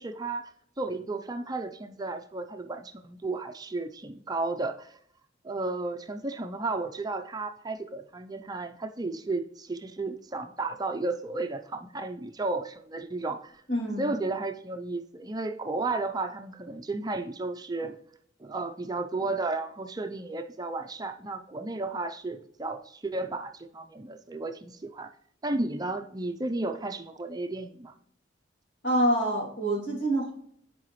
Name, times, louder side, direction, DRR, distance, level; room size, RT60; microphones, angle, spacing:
voice 1, 0.0-5.0 5.4-13.6 14.0-18.0 18.4-25.1 25.4-27.9, right 2 dB, 20° right, 7 dB, 0.5 m, -33 dB
voice 2, 13.7-14.1 28.8-30.3, right 1 dB, 70° left, -2 dB, 2.7 m, -26 dB
10.0 x 4.9 x 3.1 m, 0.64 s
head